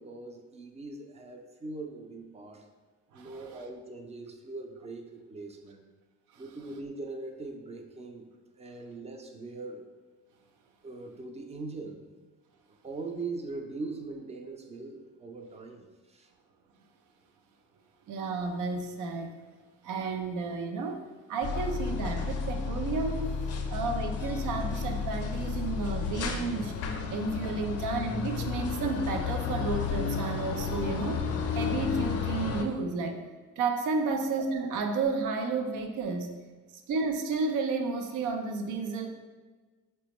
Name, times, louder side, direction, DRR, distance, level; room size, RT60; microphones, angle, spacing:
voice 1, 0.0-2.7 3.1-5.9 6.4-8.2 8.6-9.9 10.8-12.0 12.8-16.3 34.0-34.1, right 3 dB, 20° right, 3 dB, 0.4 m, -41 dB
voice 2, 18.1-19.3 19.8-21.0 21.3-23.3 23.7-26.8 27.1-31.2 31.5-33.2 33.6-36.3 36.9-39.1, right 4 dB, 80° right, 5 dB, 0.5 m, -32 dB
sound 1, 21.4-32.6, left 5 dB, 55° left, 0.4 m, -32 dB
4.1 x 2.2 x 2.9 m, 1.3 s
cardioid pair, 90°, 30 cm